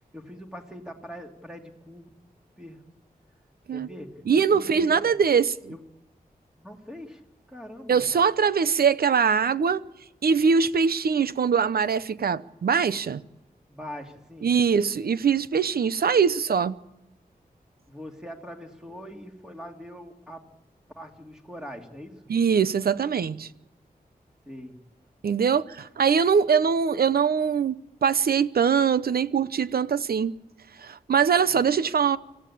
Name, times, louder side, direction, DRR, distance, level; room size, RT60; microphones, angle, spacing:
voice 1, 0.1-2.0 2.6-2.8 3.7-5.1 5.7-5.8 6.6-7.2 7.5-8.0 13.7-14.5 17.9-20.4 21.0-22.2 24.5-24.8 31.5-31.6, equal, 5° right, 2.8 m, -42 dB
voice 2, 4.3-5.7 7.9-9.8 10.2-13.2 14.4-16.8 22.3-23.5 25.2-27.7 28.0-30.3 30.8-32.2, right 6 dB, 80° right, 0.8 m, -22 dB
25.5 x 15.0 x 8.5 m
wide cardioid pair, 140°, 16 cm